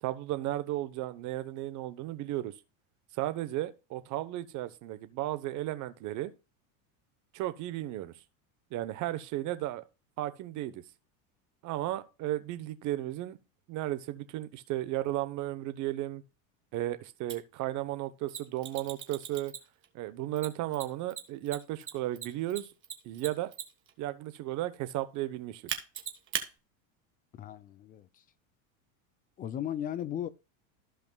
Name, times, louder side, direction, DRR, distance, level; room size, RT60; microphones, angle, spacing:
voice 1, 0.0-2.5 3.2-6.3 7.3-8.1 8.7-9.8 10.2-10.8 11.6-13.4 13.7-16.2 16.7-19.5 19.9-22.7 23.0-23.5 24.0-25.8, right 15 dB, 45° right, 1.0 m, -34 dB
Mechanisms, 17.3-17.4 18.3-19.9 20.4-23.9 25.7-26.5, right 9 dB, 30° right, 1.4 m, -37 dB
voice 2, 27.3-28.1 29.4-30.3, left 10 dB, 20° left, 0.4 m, -36 dB
15.0 x 5.2 x 2.3 m
supercardioid pair, 140°, 42 cm